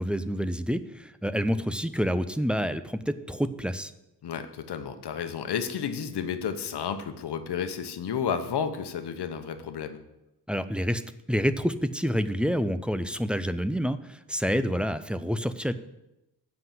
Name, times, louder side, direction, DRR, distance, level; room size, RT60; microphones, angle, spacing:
voice 1, 0.0-3.9 10.5-11.0 11.3-15.7, equal, 5° right, 11 dB, 0.4 m, -28 dB
voice 2, 4.2-10.0, left 7 dB, 70° left, 9 dB, 1.0 m, -32 dB
7.9 x 5.7 x 7.5 m, 0.91 s
cardioid pair, 110°, 41 cm